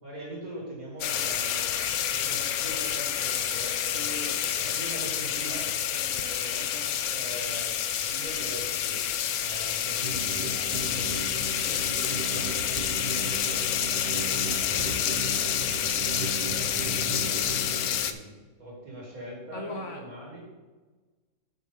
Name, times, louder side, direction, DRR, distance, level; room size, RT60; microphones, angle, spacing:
voice 1, 0.0-4.3 4.6-6.6 7.1-11.3 11.5-12.7 13.1-15.9 16.4-18.3 18.6-20.4, right 1 dB, 70° right, -3 dB, 3.0 m, -42 dB
sound 1, 1.0-18.1, left 10 dB, 80° left, 1.1 m, -28 dB
voice 2, 3.9-4.4 6.5-7.2 19.5-20.0, left 2 dB, 60° left, 3 dB, 1.1 m, -40 dB
Camera, 8.8-9.8 10.2-10.6 10.9-12.0, left 1 dB, 20° left, 2.0 m, -53 dB
sound 2, 10.0-18.0, right 2 dB, 45° right, 0.9 m, -36 dB
8.3 x 6.6 x 5.0 m, 1.3 s
omnidirectional pair, 1.6 m